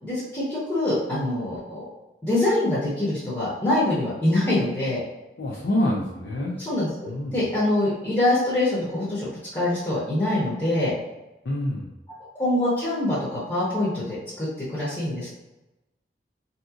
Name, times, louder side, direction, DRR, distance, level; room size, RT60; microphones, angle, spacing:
voice 1, 0.0-1.8 2.2-5.0 6.6-10.9 12.3-15.3, left 1 dB, 20° left, -9 dB, 0.8 m, -24 dB
voice 2, 5.4-6.5 7.1-7.3 11.5-11.9, left 1 dB, 70° left, -3 dB, 0.5 m, -26 dB
3.7 x 2.8 x 2.4 m, 1.0 s
head